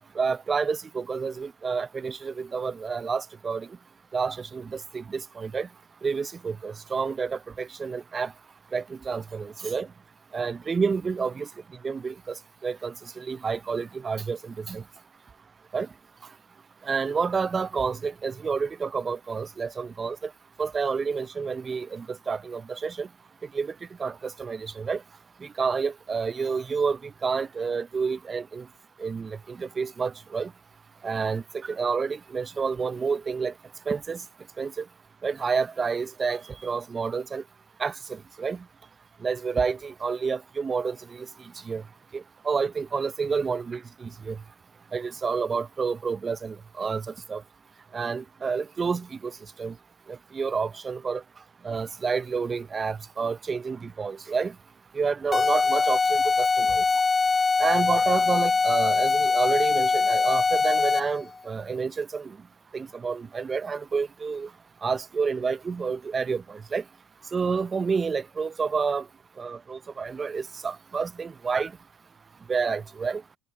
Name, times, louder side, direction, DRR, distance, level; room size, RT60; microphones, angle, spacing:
voice 1, 0.2-3.7 4.1-5.7 6.0-8.3 8.7-9.9 10.3-11.5 11.8-12.3 12.6-14.8 15.7-15.9 16.9-20.2 20.6-23.1 23.5-23.7 24.0-25.0 25.6-28.6 29.0-30.5 31.0-31.4 31.7-33.5 33.9-34.2 34.6-34.8 35.2-37.4 37.8-37.9 38.4-38.6 39.2-41.0 41.7-41.8 42.1-44.4 44.9-47.0 47.3-47.4 47.9-49.3 49.6-49.7 50.3-51.2 51.6-54.5 54.9-56.8 57.6-62.3 62.7-64.5 64.8-66.8 67.3-69.0 69.4-71.7 72.5-73.2, right 5 dB, 30° right, 0.6 m, -29 dB
sound 1, 55.3-61.2, left 4 dB, 25° left, 0.4 m, -22 dB
hypercardioid pair, 75°, 0 cm